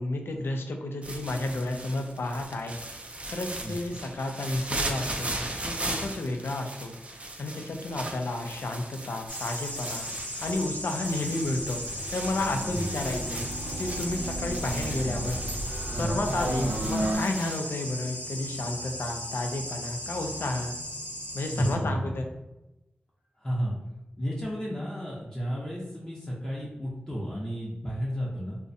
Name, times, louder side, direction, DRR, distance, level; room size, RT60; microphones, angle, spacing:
voice 1, 0.0-2.8 3.3-6.9 7.4-10.1 10.4-11.8 12.1-15.4 15.9-20.7 21.3-22.3, left 2 dB, 75° left, 4 dB, 0.3 m, -32 dB
sound 1, 1.0-17.6, right 1 dB, 30° right, 0.4 m, -38 dB
sound 2, 9.3-21.7, equal, 40° left, 1.0 m, -37 dB
sound 3, 10.7-17.1, right 1 dB, 80° right, 0.6 m, -34 dB
voice 2, 21.5-22.3 23.4-23.7 24.2-28.6, equal, 20° left, -6 dB, 0.6 m, -32 dB
2.5 x 2.1 x 2.6 m, 0.98 s
cardioid pair, 50°, 4 cm